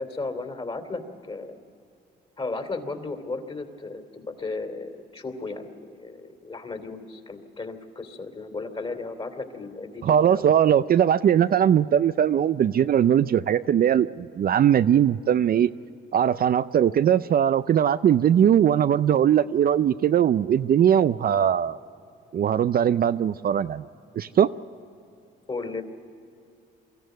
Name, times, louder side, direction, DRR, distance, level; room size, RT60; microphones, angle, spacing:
voice 1, 0.0-1.6 2.4-10.4 25.5-25.8, left 3 dB, 30° left, 7 dB, 3.0 m, -35 dB
voice 2, 10.0-15.7 16.1-21.8 22.3-23.9 24.2-24.5, right 9 dB, 50° right, 13 dB, 0.5 m, -20 dB
24.0 x 14.5 x 9.2 m, 2.6 s
cardioid pair, 90°, 20 cm